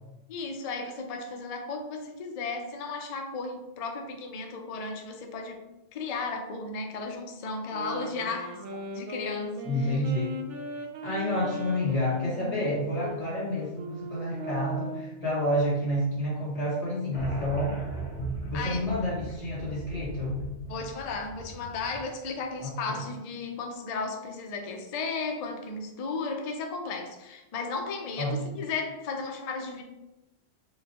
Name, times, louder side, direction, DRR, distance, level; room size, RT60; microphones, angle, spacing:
voice 1, 0.3-5.6 5.9-8.5 8.9-9.6 9.8-10.0 18.5-18.9 20.7-29.8, left 4 dB, 75° left, 3 dB, 0.3 m, -35 dB
sound 1, 7.7-15.2, equal, 80° right, 0.9 m, -38 dB
voice 2, 9.6-10.4 11.0-17.8 18.5-20.4 22.6-23.0 28.2-28.5, left 1 dB, 30° left, -7 dB, 1.5 m, -29 dB
sound 2, 17.1-22.4, right 2 dB, 55° left, 1.1 m, -38 dB
4.7 x 2.2 x 2.8 m, 0.96 s
omnidirectional pair, 1.2 m